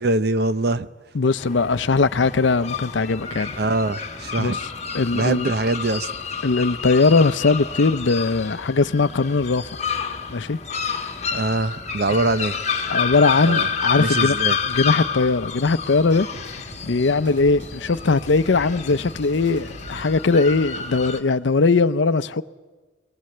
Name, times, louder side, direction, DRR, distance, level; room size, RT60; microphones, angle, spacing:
voice 1, 0.0-0.9 3.6-4.6 5.1-6.1 11.3-12.6 13.5-13.7 14.0-14.6, right 2 dB, 55° right, 0.7 m, -23 dB
voice 2, 1.1-3.5 4.4-4.7 4.9-5.5 6.4-9.6 10.3-10.6 12.9-14.4 14.7-16.3 16.8-22.4, left 3 dB, 75° left, 0.6 m, -20 dB
sound 1, 1.4-21.2, left 6 dB, 35° left, 1.3 m, -29 dB
sound 2, 14.5-20.1, right 1 dB, 75° right, 6.8 m, -43 dB
22.0 x 21.5 x 7.8 m
head